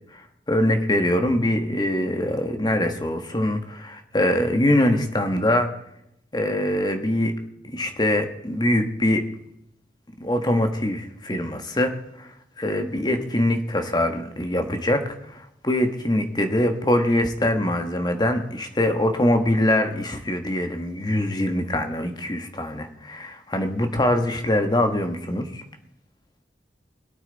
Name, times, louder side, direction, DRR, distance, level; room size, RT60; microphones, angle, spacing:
voice 1, 0.5-5.7 6.3-7.3 7.7-9.2 10.2-11.9 12.2-15.0 15.3-25.6, left 1 dB, 25° left, 6 dB, 1.3 m, -23 dB
21.5 x 9.0 x 4.0 m, 0.78 s
head